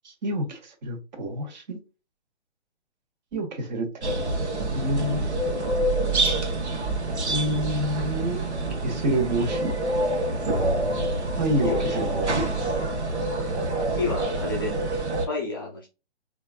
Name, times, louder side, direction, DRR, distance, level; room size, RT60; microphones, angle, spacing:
voice 1, 0.0-1.8 3.3-4.3 4.7-5.3 7.3-8.4 8.8-9.7 11.4-12.4, right 1 dB, 40° right, 1.2 m, -28 dB
sound 1, 4.0-15.3, right 2 dB, 75° right, 1.3 m, -26 dB
voice 2, 11.6-12.0 13.9-14.9 15.3-15.9, left 3 dB, 20° left, 0.4 m, -30 dB
4.2 x 2.5 x 2.3 m
figure-of-eight pair, 140°, 34 cm